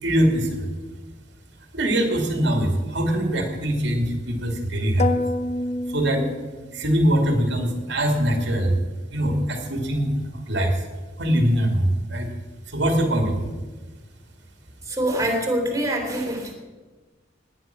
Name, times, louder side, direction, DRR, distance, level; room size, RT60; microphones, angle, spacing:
voice 1, 0.0-0.7 1.7-5.2 5.9-6.2 6.7-8.8 9.1-10.8 11.2-12.3 12.7-13.5, equal, 70° right, 3 dB, 2.6 m, -22 dB
sound 1, 5.0-7.0, left 2 dB, 35° left, 0.7 m, -27 dB
voice 2, 14.9-16.5, right 1 dB, 15° right, 2 dB, 3.1 m, -24 dB
18.0 x 10.0 x 6.0 m, 1.3 s
head